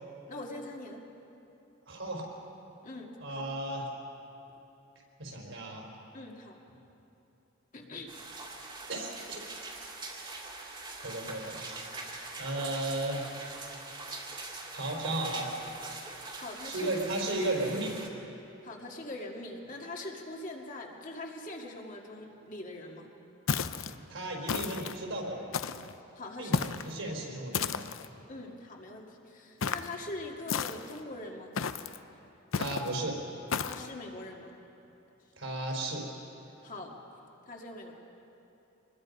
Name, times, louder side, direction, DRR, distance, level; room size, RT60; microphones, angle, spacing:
voice 1, 0.3-1.1 2.8-3.4 6.1-6.6 7.7-8.1 16.4-17.1 18.6-23.1 26.2-26.7 28.3-31.5 33.6-34.5 36.6-37.0 37.5-37.9, left 2 dB, 40° left, 0 dB, 2.1 m, -42 dB
voice 2, 1.9-2.3 3.2-3.9 5.2-5.8 8.9-9.4 11.0-11.8 12.0-12.1 12.4-13.3 14.7-15.5 16.6-18.0 24.1-25.5 26.4-27.8 32.6-33.2 35.4-36.0, right 2 dB, 70° right, -1 dB, 4.4 m, -34 dB
sound 1, 8.1-18.1, right 3 dB, 25° right, 2.3 m, -43 dB
sound 2, 23.5-23.9 24.5-25.0 25.5-25.9 26.5-26.9 27.5-28.1 29.6-29.9 30.5-31.0 31.6-32.0 32.5-32.9 33.5-33.9, left 6 dB, 80° left, 0.7 m, -32 dB
25.0 x 21.0 x 5.4 m, 2.9 s
head